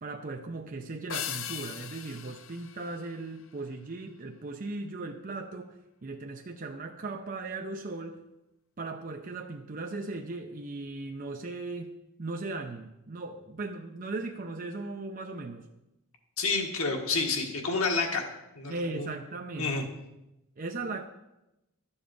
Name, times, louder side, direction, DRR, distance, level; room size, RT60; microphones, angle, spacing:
voice 1, 0.0-8.2 8.8-15.7 18.7-19.9 20.6-21.1, right 3 dB, 40° right, 4 dB, 0.5 m, -38 dB
sound 1, 1.1-3.7, left 9 dB, 70° left, 0.6 m, -39 dB
voice 2, 16.4-18.2 18.5-19.1 19.6-19.8, left 4 dB, 85° left, 3 dB, 1.6 m, -29 dB
11.0 x 7.1 x 5.2 m, 0.92 s
head